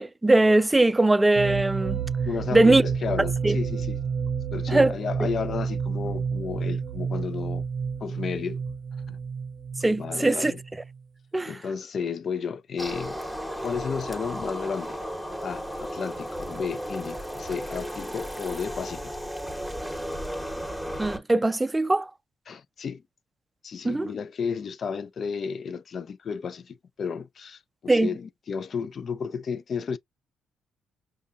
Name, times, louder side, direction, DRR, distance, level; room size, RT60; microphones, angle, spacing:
voice 1, 0.0-2.0 2.5-2.8 3.4-3.6 4.7-4.9 9.8-10.5 11.3-11.5 21.0-22.1 23.8-24.1 27.9-28.1, right 2 dB, 15° right, 0.4 m, -20 dB
sound 1, 1.4-11.0, right 6 dB, 75° right, 0.6 m, -30 dB
voice 2, 2.2-4.0 4.5-7.6 8.0-8.6 9.1-9.2 10.0-10.6 11.5-13.1 13.6-15.0 15.4-19.2 22.5-23.0 23.6-30.0, left 6 dB, 50° left, 0.4 m, -33 dB
sound 2, 12.8-21.2, equal, ahead, 1.1 m, -34 dB
5.3 x 2.2 x 2.5 m
cardioid pair, 90°, 0 cm